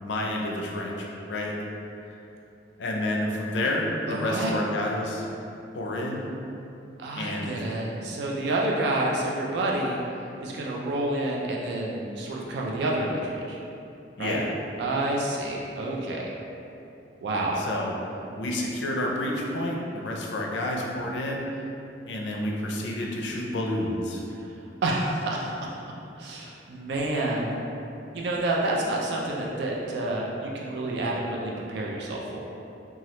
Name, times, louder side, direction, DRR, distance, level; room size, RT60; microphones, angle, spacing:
voice 1, 0.0-1.6 2.8-5.3 5.7-6.2 7.1-7.7 14.2-14.5 17.6-17.9 18.4-21.5 22.1-24.2, left 1 dB, 75° left, -1 dB, 0.4 m, -29 dB
voice 2, 4.1-4.5 7.0-10.0 10.4-13.6 14.2-14.4 14.8-16.2 17.2-17.6 24.8-25.5 26.2-27.6 28.1-32.4, right 2 dB, 65° right, -2 dB, 0.4 m, -28 dB
3.1 x 2.3 x 2.9 m, 2.8 s
head